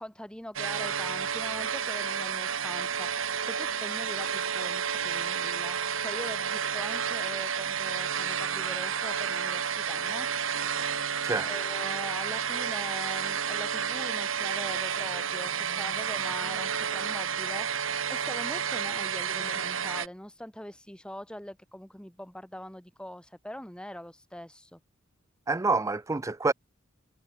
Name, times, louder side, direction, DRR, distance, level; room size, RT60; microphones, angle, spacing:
voice 1, 0.0-10.3 11.4-24.8, equal, 5° left, 2.8 m, -42 dB
sound 1, 0.6-20.1, right 7 dB, 70° right, 1.9 m, -31 dB
voice 2, 25.5-26.5, right 3 dB, 15° right, 0.4 m, -27 dB
head